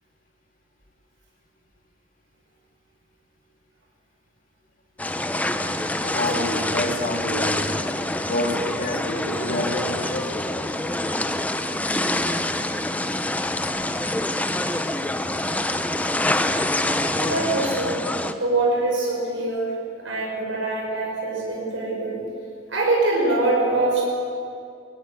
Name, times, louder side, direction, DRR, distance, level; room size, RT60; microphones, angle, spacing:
sound 1, 5.0-18.3, left 1 dB, 10° left, 0.8 m, -26 dB
voice 1, 6.0-7.7 8.3-10.4, left 1 dB, 45° left, 1 dB, 3.4 m, -27 dB
voice 2, 17.1-18.0 18.4-19.8 20.0-22.2 22.7-24.0, right 2 dB, 75° right, -3 dB, 5.8 m, -23 dB
22.0 x 16.5 x 9.6 m, 2.3 s
head